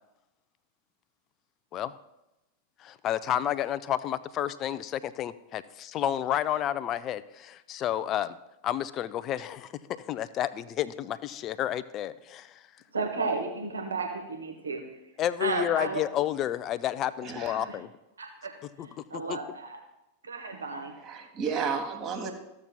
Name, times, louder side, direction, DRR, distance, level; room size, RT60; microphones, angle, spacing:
voice 1, 2.8-8.4 8.6-12.6 15.2-17.9 19.1-19.4, left 11 dB, 35° left, 15 dB, 0.4 m, -31 dB
voice 2, 12.9-14.8 15.4-16.0 17.7-17.8 18.2-19.8 20.2-20.9, right 3 dB, 75° right, 3 dB, 1.0 m, -33 dB
voice 3, 17.2-17.7 21.0-22.3, right 6 dB, 30° right, 5 dB, 1.2 m, -32 dB
14.0 x 7.2 x 2.2 m, 0.93 s
figure-of-eight pair, 90°, 0 cm